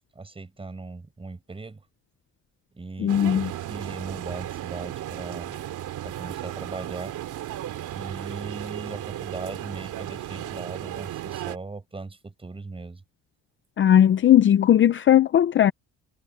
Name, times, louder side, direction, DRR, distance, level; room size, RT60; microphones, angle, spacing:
voice 1, 0.1-1.9 2.7-5.6 6.0-7.2 7.9-13.0, right 3 dB, 15° right, 6.0 m, -38 dB
voice 2, 3.0-3.5 13.8-15.7, left 10 dB, 35° left, 0.6 m, -18 dB
sound 1, 3.1-11.6, right 13 dB, 65° right, 2.8 m, -35 dB
cardioid pair, 135°, 34 cm